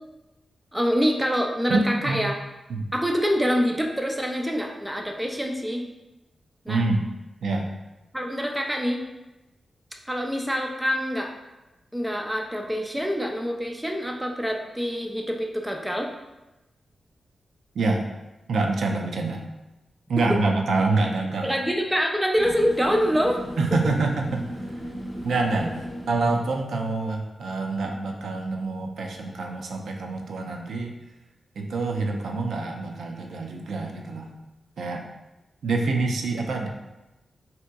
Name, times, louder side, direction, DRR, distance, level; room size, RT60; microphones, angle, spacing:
voice 1, 0.7-2.3 2.9-5.8 6.7-6.8 8.1-9.0 10.1-11.3 11.9-16.1 21.4-23.4, equal, 5° right, 2 dB, 0.3 m, -25 dB
voice 2, 1.7-2.2 2.7-2.9 6.7-7.0 7.4-7.7 17.7-18.0 18.5-19.4 20.1-21.6 23.6-24.4 25.2-25.8 26.1-30.9 31.6-34.3 34.8-35.0 35.6-36.7, right 3 dB, 85° right, 2 dB, 0.3 m, -26 dB
sound 1, 22.4-26.6, equal, 15° left, 1.2 m, -36 dB
3.4 x 2.8 x 2.2 m, 1.0 s
wide cardioid pair, 135°, 0 cm